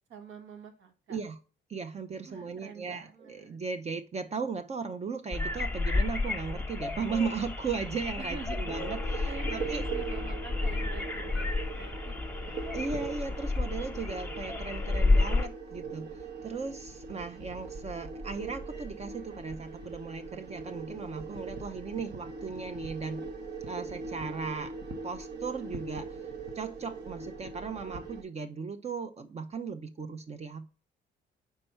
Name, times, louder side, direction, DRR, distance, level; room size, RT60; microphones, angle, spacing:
voice 1, 0.1-1.2 2.2-3.6 8.2-8.9 9.2-12.2 12.5-12.8, right 5 dB, 75° right, 1.3 m, -46 dB
voice 2, 1.7-9.8 12.7-16.1 16.4-23.3 23.7-24.7 25.0-26.2 26.5-30.7, right 5 dB, 35° right, 0.6 m, -37 dB
sound 1, 5.3-15.5, left 3 dB, 10° left, 1.0 m, -31 dB
sound 2, 8.6-28.2, right 4 dB, 55° right, 1.0 m, -41 dB
4.6 x 4.3 x 5.5 m
cardioid pair, 90°, 20 cm